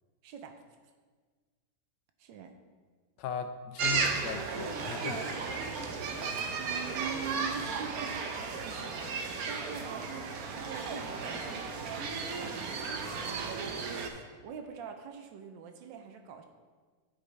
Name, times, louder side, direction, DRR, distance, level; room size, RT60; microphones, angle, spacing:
voice 1, 0.2-0.6 2.2-2.5 6.6-9.0 9.5-16.4, right 7 dB, 85° right, 5 dB, 1.4 m, -44 dB
voice 2, 3.2-5.8, left 7 dB, 75° left, 8 dB, 1.2 m, -39 dB
sound 1, 3.8-14.1, right 4 dB, 65° right, 1.0 m, -34 dB
11.5 x 5.0 x 3.2 m, 1.5 s
omnidirectional pair, 2.0 m